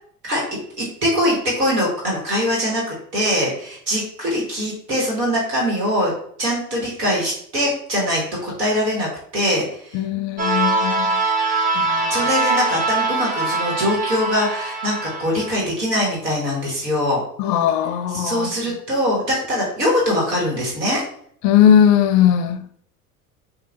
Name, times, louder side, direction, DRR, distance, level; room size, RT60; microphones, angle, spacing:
voice 1, 0.8-6.1 6.4-9.1 9.3-10.0 12.1-17.2 18.1-21.0, equal, 90° right, -3 dB, 1.5 m, -22 dB
voice 2, 9.9-11.2 11.8-12.3 17.4-18.5 21.4-22.6, left 9 dB, 40° left, 9 dB, 0.4 m, -18 dB
sound 1, 10.4-15.6, right 3 dB, 20° right, 0.5 m, -22 dB
5.5 x 2.4 x 2.5 m, 0.63 s
hypercardioid pair, 80°, 47 cm